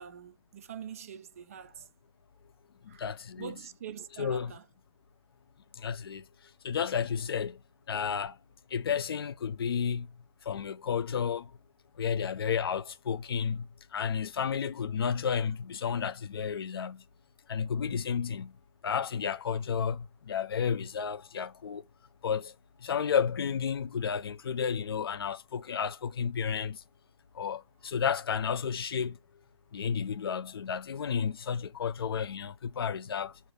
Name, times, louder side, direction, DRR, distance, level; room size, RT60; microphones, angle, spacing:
voice 1, 0.0-1.9 2.9-3.1 3.4-4.6, right 8 dB, 25° right, 0.5 m, -44 dB
voice 2, 2.8-3.6 4.2-4.5 5.7-7.6 7.9-8.4 8.7-11.5 12.0-17.0 17.5-18.6 18.8-21.8 22.2-26.8 27.3-29.2 29.7-33.4, left 7 dB, 45° left, 0.5 m, -32 dB
6.7 x 2.7 x 5.1 m
figure-of-eight pair, 145°, 18 cm